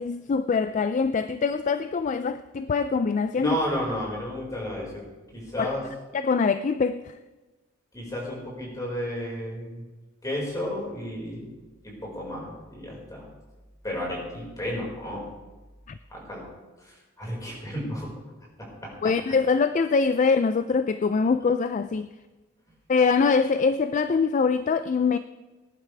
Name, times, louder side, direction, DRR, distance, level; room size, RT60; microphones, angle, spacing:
voice 1, 0.0-3.6 5.6-5.7 6.1-7.1 19.0-22.1 22.9-25.2, left 5 dB, 40° left, 0.3 m, -23 dB
voice 2, 3.4-4.9 5.3-5.8 7.9-9.8 10.2-11.5 11.8-13.2 13.8-15.2 16.1-16.5 16.8-18.1 18.6-18.9, equal, 20° left, 5.0 m, -32 dB
20.0 x 11.0 x 3.4 m
head